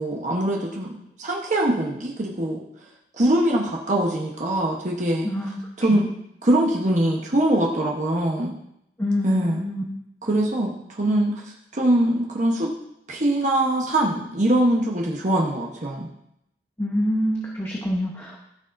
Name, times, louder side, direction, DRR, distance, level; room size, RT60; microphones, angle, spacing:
voice 1, 0.0-2.6 3.1-5.3 5.8-6.0 6.4-8.5 9.2-9.6 10.2-12.7 13.1-16.1, right 1 dB, 40° right, -2 dB, 1.0 m, -22 dB
voice 2, 5.2-5.6 5.9-6.1 9.0-9.8 16.8-18.4, left 1 dB, 15° left, -3 dB, 0.9 m, -26 dB
14.5 x 6.3 x 2.6 m, 0.79 s
head